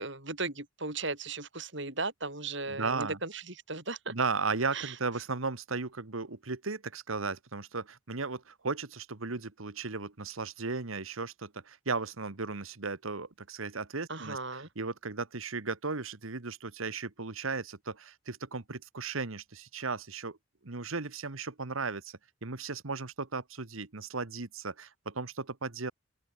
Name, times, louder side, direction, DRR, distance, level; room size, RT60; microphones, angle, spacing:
voice 1, 0.0-4.1 4.7-5.0 14.1-14.7, right 3 dB, 60° right, 6.1 m, -36 dB
voice 2, 2.7-3.2 4.1-20.4 20.6-25.9, right 4 dB, 80° right, 1.5 m, -36 dB
open air
head